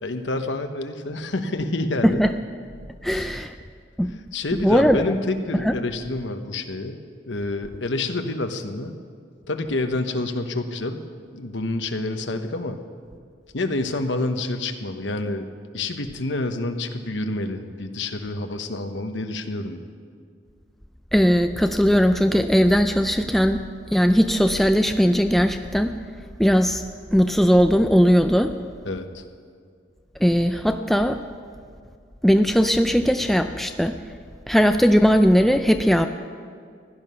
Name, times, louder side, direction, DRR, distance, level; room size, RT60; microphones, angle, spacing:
voice 1, 0.0-2.2 3.1-3.4 4.3-7.0 7.2-8.9 9.5-11.0 11.3-12.8 13.5-15.5 15.7-19.8 28.8-29.2, left 2 dB, 80° left, 7 dB, 1.0 m, -28 dB
voice 2, 3.0-3.5 4.0-4.1 4.5-5.0 5.6-5.8 21.1-23.6 23.9-25.9 26.4-26.8 27.1-28.5 30.2-31.2 32.2-34.0 34.5-36.1, equal, ahead, 7 dB, 0.3 m, -18 dB
16.0 x 11.0 x 5.7 m, 2.2 s
head